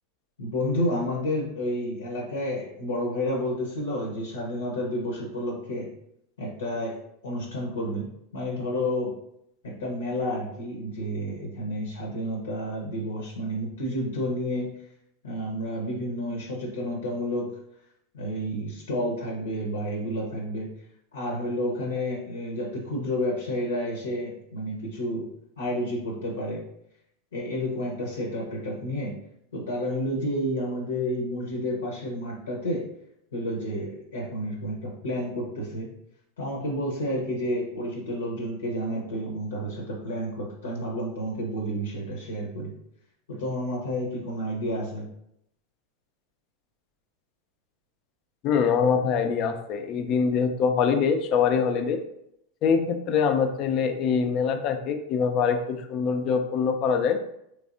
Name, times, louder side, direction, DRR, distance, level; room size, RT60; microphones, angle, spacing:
voice 1, 0.4-5.9 6.4-7.0 7.2-8.1 8.3-9.1 9.6-14.7 15.2-17.5 18.1-20.7 21.1-25.3 25.6-26.6 27.3-29.1 29.5-32.8 33.3-35.9 36.4-42.7 43.3-45.1, equal, 75° left, -1 dB, 0.8 m, -30 dB
voice 2, 48.4-52.0 52.6-57.2, left 6 dB, 45° left, 7 dB, 0.5 m, -24 dB
3.3 x 3.3 x 2.5 m, 0.77 s
figure-of-eight pair, 90°, 0 cm